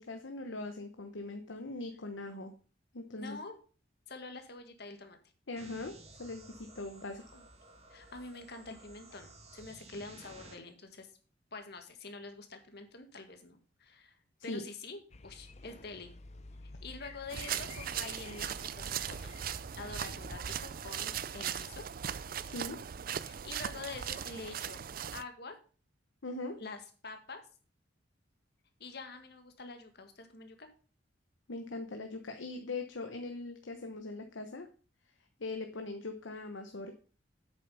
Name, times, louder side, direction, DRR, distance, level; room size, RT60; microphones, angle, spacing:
voice 1, 0.0-2.5 2.9-3.4 5.5-5.9 6.2-7.2 14.5-14.6 22.4-22.8 26.2-26.6 31.5-34.7 35.4-36.9, left 2 dB, 85° left, 6 dB, 1.0 m, -41 dB
voice 2, 3.2-3.6 4.1-5.2 7.3-7.4 7.9-11.1 11.5-14.2 14.4-16.1 16.6-19.3 19.8-21.9 23.2-24.8 25.1-25.6 26.6-27.4 28.8-30.7, left 3 dB, 60° left, 6 dB, 1.8 m, -46 dB
sound 1, 5.6-10.6, right 2 dB, 35° right, 2.0 m, -55 dB
sound 2, 15.1-20.4, left 3 dB, 35° left, 0.6 m, -51 dB
sound 3, 17.3-25.2, right 9 dB, 50° right, 0.4 m, -39 dB
8.4 x 6.9 x 5.6 m, 0.38 s
head